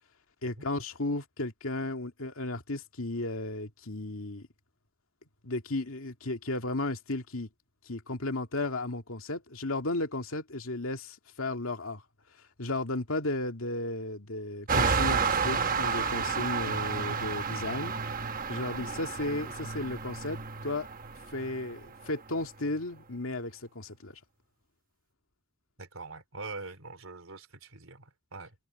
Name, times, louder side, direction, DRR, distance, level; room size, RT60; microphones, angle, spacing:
voice 1, 0.4-4.5 5.4-7.5 7.9-12.0 12.6-17.9 18.5-20.9 21.3-24.2, left 2 dB, 75° left, 2.3 m, -34 dB
sound 1, 14.7-22.7, right 5 dB, 40° right, 1.1 m, -31 dB
voice 2, 25.8-28.5, right 3 dB, 80° right, 3.6 m, -43 dB
head